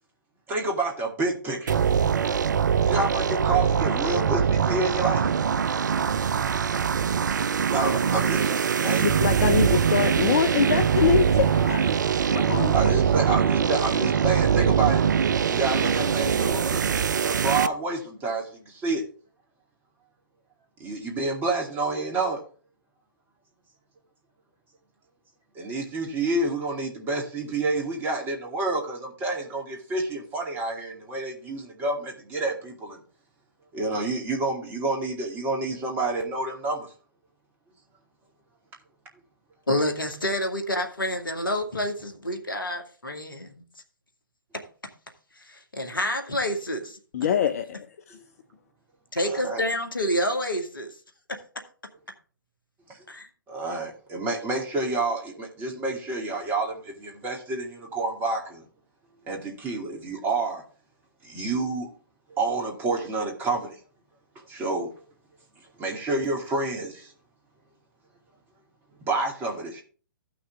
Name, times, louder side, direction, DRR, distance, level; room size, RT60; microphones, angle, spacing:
voice 1, 0.5-1.8 2.8-5.3 6.6-6.9 7.7-9.1 12.7-15.1 15.4-19.0 20.8-22.4 25.5-33.0 33.7-36.9 49.2-49.6 52.9-53.0 53.5-58.7 59.3-60.6 61.2-61.9 62.3-63.8 64.5-64.9 65.8-67.1 69.0-69.8, right 3 dB, 15° right, 2.3 m, -29 dB
sound 1, 1.7-17.7, right 7 dB, 60° right, 0.4 m, -23 dB
voice 2, 9.0-11.9 12.3-12.9 47.1-48.2, left 8 dB, 45° left, 0.7 m, -24 dB
voice 3, 39.7-43.5 44.5-44.6 45.5-47.0 49.1-50.9 51.3-51.4 53.1-53.3, left 1 dB, 75° left, 1.9 m, -28 dB
15.5 x 6.1 x 3.5 m
figure-of-eight pair, 125°, 11 cm